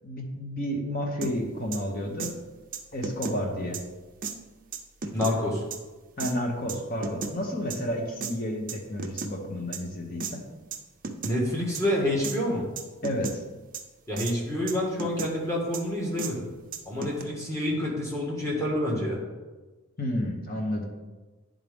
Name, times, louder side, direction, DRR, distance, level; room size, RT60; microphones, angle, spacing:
voice 1, 0.0-2.4 2.9-3.8 6.2-10.4 13.0-13.4 20.0-20.8, equal, 40° left, 1 dB, 1.0 m, -31 dB
sound 1, 1.2-1.3 1.7-1.8 2.2-2.3 2.7-3.4 3.7-3.8 4.2-4.4 4.7-5.3 5.7-5.8 6.2-6.3 6.7-7.3 7.7-7.8 8.2-8.3 8.7-9.3 9.7-9.8 10.2-10.3 10.7-10.8 11.0-11.4 11.7-11.8 12.2-12.4 12.8-13.4 13.7-13.8 14.2-14.4 14.7-15.3 15.7-15.8 16.2-16.3 16.7-17.2, right 5 dB, 40° right, 0.5 m, -34 dB
voice 2, 5.1-5.6 11.2-12.6 14.1-16.5 16.8-19.2, left 1 dB, 15° left, -4 dB, 1.4 m, -28 dB
9.8 x 3.7 x 3.5 m, 1.2 s
head